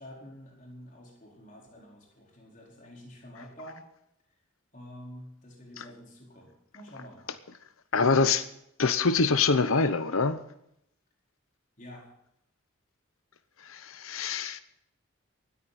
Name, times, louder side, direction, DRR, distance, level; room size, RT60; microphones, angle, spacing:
voice 1, 0.0-3.8 4.7-7.3 11.8-12.1, equal, 35° left, 4.6 m, -48 dB
voice 2, 7.9-8.4 8.8-10.4 13.6-14.6, left 4 dB, 80° left, 0.9 m, -25 dB
19.5 x 14.0 x 4.3 m
head